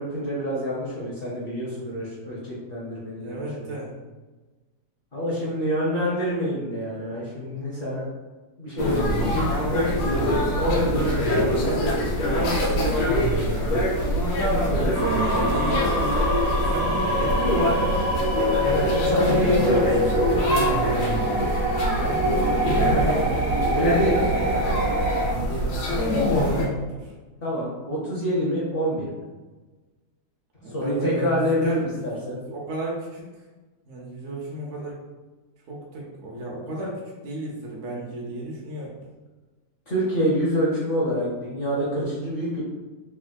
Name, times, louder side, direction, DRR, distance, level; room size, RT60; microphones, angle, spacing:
voice 1, 0.0-3.7 5.1-8.1 8.6-12.9 13.6-13.9 14.5-14.9 18.8-19.9 22.8-23.2 23.7-24.1 27.4-29.2 30.7-32.4 39.9-42.6, equal, 45° left, -7 dB, 0.8 m, -27 dB
voice 2, 3.2-3.9 10.4-10.8 14.7-17.9 19.1-19.7 21.9-23.3 23.9-27.1 30.6-32.0 32.5-33.3 33.9-35.0 35.7-39.0, right 2 dB, 60° right, -4 dB, 0.9 m, -33 dB
sound 1, 8.8-26.7, equal, 85° left, 1.2 m, -24 dB
sound 2, 14.9-25.3, right 1 dB, 20° left, 1.2 m, -26 dB
3.4 x 2.6 x 2.2 m, 1.2 s
omnidirectional pair, 1.7 m